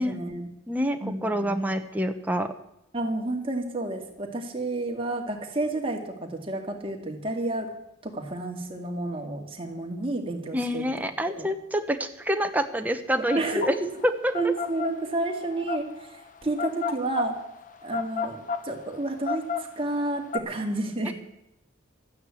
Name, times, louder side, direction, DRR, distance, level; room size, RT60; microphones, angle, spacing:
voice 1, 0.0-0.5 1.0-1.5 2.9-7.7 8.0-10.9 11.4-11.5 13.3-13.7 14.3-16.1 16.4-17.4 17.8-21.1, right 2 dB, 30° right, 2 dB, 2.2 m, -30 dB
voice 2, 0.7-2.5 10.5-13.8 14.0-14.1 21.0-21.1, equal, 10° right, 6 dB, 1.0 m, -27 dB
sound 1, 13.3-20.4, left 5 dB, 40° left, 0.8 m, -32 dB
13.0 x 9.5 x 8.4 m, 0.83 s
head